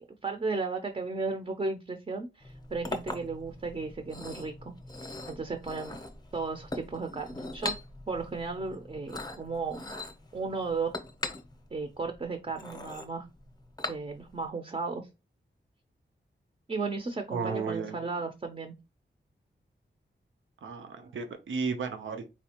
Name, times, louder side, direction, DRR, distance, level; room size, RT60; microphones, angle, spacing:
voice 1, 0.2-4.7 5.0-6.0 6.3-7.8 8.1-9.8 10.3-11.0 11.7-13.3 13.9-15.1 16.7-18.7 21.0-21.1, right 4 dB, 30° right, 5 dB, 0.5 m, -35 dB
Chink clink, 2.4-14.4, left 2 dB, 20° left, 0.7 m, -41 dB
voice 2, 17.3-17.9 20.6-22.3, right 5 dB, 80° right, 7 dB, 0.6 m, -33 dB
4.2 x 2.3 x 2.8 m, 0.26 s
wide cardioid pair, 90°, 19 cm